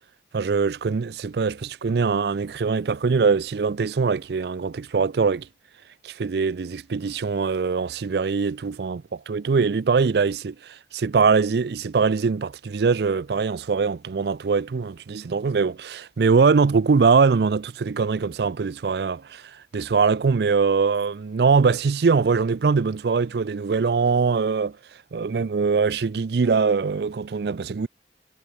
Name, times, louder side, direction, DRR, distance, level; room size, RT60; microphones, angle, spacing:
voice 1, 0.3-5.5 6.0-19.4 19.7-24.8 25.1-27.9, right 5 dB, 70° right, 0.4 m, -22 dB
head